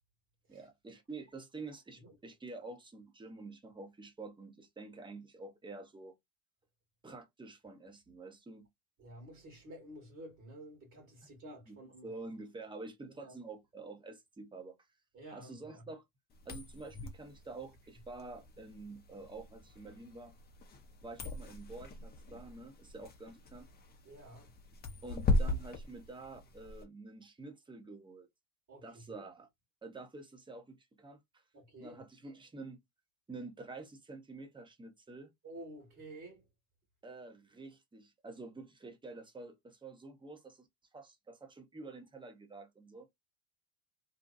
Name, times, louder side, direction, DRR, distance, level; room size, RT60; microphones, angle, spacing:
voice 1, 0.5-6.1 7.0-8.7 11.7-11.8 12.0-14.8 15.3-16.0 16.4-20.3 21.0-23.7 25.0-28.3 28.8-29.5 29.8-31.4 31.8-32.8 33.3-35.3 37.0-40.7 40.9-43.1, right 3 dB, 10° right, 0.8 m, -48 dB
voice 2, 9.0-12.1 13.1-13.3 15.1-15.8 24.0-24.5 28.7-29.3 31.5-32.0 35.4-36.5, right 1 dB, 35° right, 1.4 m, -51 dB
sound 1, 16.3-26.8, left 2 dB, 20° left, 0.6 m, -38 dB
2.7 x 2.2 x 2.3 m
hypercardioid pair, 90°, 43 cm